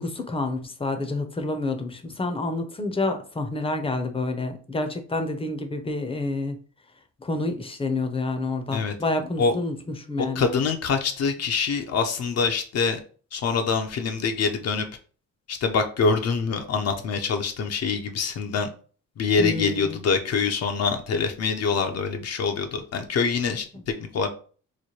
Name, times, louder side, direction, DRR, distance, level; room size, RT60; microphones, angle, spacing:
voice 1, 0.0-6.6 7.2-9.8 10.1-10.4 19.4-20.0, left 2 dB, 20° left, 7 dB, 0.7 m, -28 dB
voice 2, 10.2-13.0 13.3-14.9 15.5-18.7 19.2-24.3, left 5 dB, 55° left, 5 dB, 0.7 m, -25 dB
3.1 x 2.2 x 4.2 m, 0.40 s
cardioid pair, 90°, 30 cm